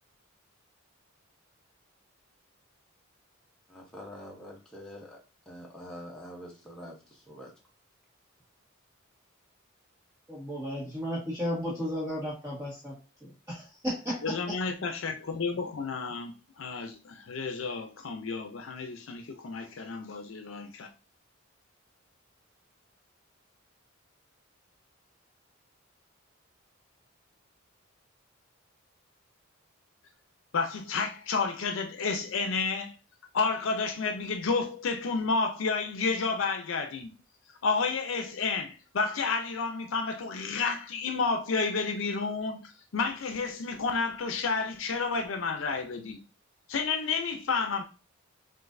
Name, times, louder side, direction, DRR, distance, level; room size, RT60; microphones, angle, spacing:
voice 1, 3.7-7.5, equal, 5° left, 0.8 m, -46 dB
voice 2, 10.3-12.9 13.2-14.6, equal, 15° right, 1.4 m, -34 dB
voice 3, 14.2-16.3 16.6-20.9 30.5-32.9 33.3-37.1 37.6-46.2 46.7-47.8, left 4 dB, 70° left, 0.5 m, -31 dB
6.0 x 2.5 x 2.5 m
head